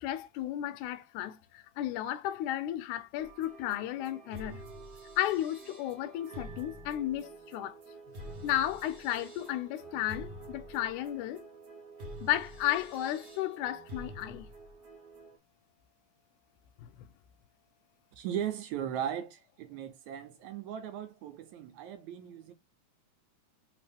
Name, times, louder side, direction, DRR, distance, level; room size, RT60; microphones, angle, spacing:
voice 1, 0.0-4.6 5.2-7.8 8.4-11.4 12.2-14.5 16.8-17.1, left 13 dB, 80° left, 1.9 m, -33 dB
sound 1, 3.2-15.4, right 1 dB, 60° right, 1.1 m, -47 dB
voice 2, 18.2-22.5, right 9 dB, 80° right, 1.9 m, -37 dB
4.2 x 3.5 x 3.3 m
omnidirectional pair, 3.6 m